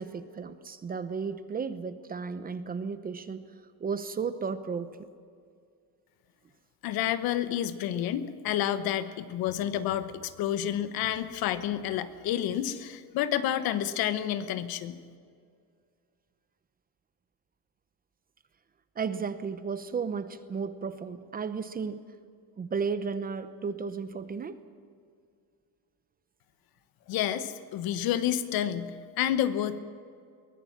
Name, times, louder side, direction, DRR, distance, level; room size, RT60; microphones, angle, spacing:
voice 1, 0.0-3.4 3.8-5.1 19.0-22.0 22.6-24.6, right 5 dB, 20° right, 12 dB, 0.8 m, -34 dB
voice 2, 6.8-15.0 27.1-29.8, left 11 dB, 65° left, 12 dB, 1.3 m, -29 dB
23.0 x 18.0 x 7.3 m, 2.2 s
cardioid pair, 150°, 39 cm